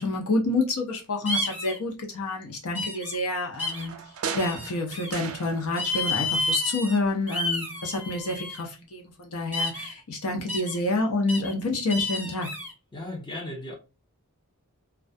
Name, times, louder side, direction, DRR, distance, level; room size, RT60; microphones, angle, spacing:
voice 1, 0.0-3.9 4.3-12.5, left 2 dB, 70° left, 0.7 m, -28 dB
sound 1, 1.3-1.8 2.7-3.2 3.6-3.9 4.4-5.1 5.8-7.0 7.3-8.6 9.5-9.9 10.5-10.8 11.3-11.5 11.9-12.7, left 2 dB, 10° right, 1.0 m, -30 dB
sound 2, 3.5-6.0 6.2-7.3 7.7-7.8, right 6 dB, 70° right, 0.4 m, -38 dB
voice 2, 12.9-13.7, left 1 dB, 20° left, 0.7 m, -36 dB
2.3 x 2.2 x 2.4 m
head